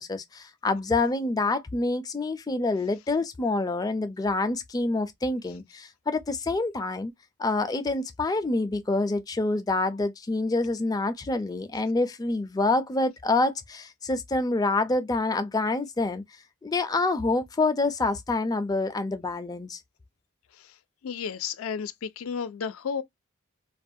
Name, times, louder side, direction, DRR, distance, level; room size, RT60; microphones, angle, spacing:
voice 1, 0.0-7.1 7.4-16.2 16.6-19.8, left 2 dB, 20° left, 0.4 m, -27 dB
voice 2, 21.0-23.0, left 6 dB, 80° left, 0.4 m, -32 dB
2.3 x 2.1 x 2.6 m
head